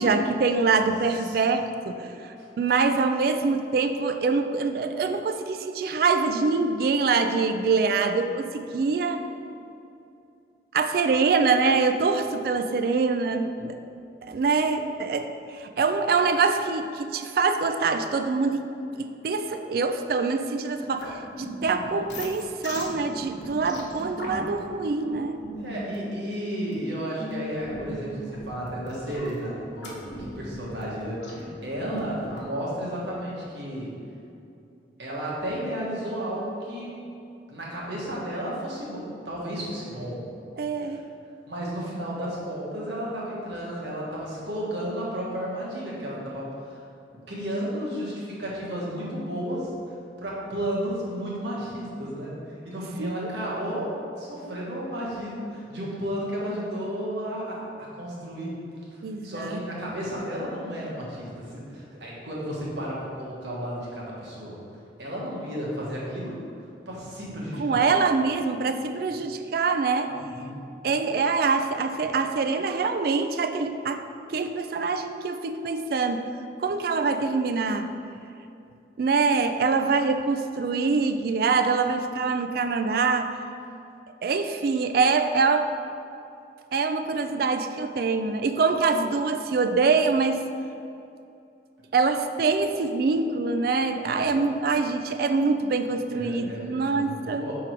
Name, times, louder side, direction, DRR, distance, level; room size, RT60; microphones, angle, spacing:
voice 1, 0.0-9.3 10.7-13.8 14.3-18.7 19.0-25.4 40.6-41.0 53.0-53.3 59.0-59.6 67.6-70.1 70.8-74.0 74.3-77.9 79.0-83.3 84.2-85.7 86.7-90.4 91.9-97.5, right 4 dB, 55° right, 8 dB, 0.3 m, -24 dB
sound 1, 21.0-32.4, equal, 85° left, 1.1 m, -39 dB
voice 2, 25.6-33.9 35.0-36.9 37.5-40.2 40.8-41.0 41.5-46.8 47.3-49.7 50.2-58.6 59.2-64.5 65.0-66.4 66.9-67.8 70.1-70.6 94.0-94.4 96.1-97.5, equal, 75° right, -5 dB, 1.4 m, -33 dB
5.9 x 3.7 x 4.5 m, 2.6 s
head